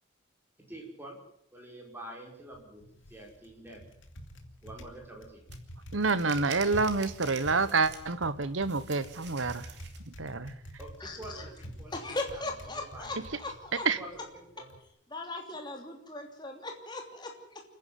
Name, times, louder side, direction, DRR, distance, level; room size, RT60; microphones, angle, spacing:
voice 1, 0.7-1.2 1.5-2.8 3.1-3.9 4.6-5.4 10.8-12.4 12.7-13.3 14.0-14.7, right 1 dB, 10° right, -1 dB, 5.7 m, -47 dB
Typing, 2.4-14.8, equal, 75° left, 2.6 m, -48 dB
sound 1, 5.5-5.6 6.0-8.2 8.7-10.1, right 7 dB, 60° right, 2.6 m, -47 dB
voice 2, 5.9-9.6 10.2-10.5 13.8-14.0, right 4 dB, 80° right, 15 dB, 1.2 m, -28 dB
voice 3, 11.0-11.5 11.9-13.9 15.1-17.6, left 2 dB, 20° left, 2 dB, 3.0 m, -38 dB
29.0 x 10.5 x 9.4 m, 0.71 s
head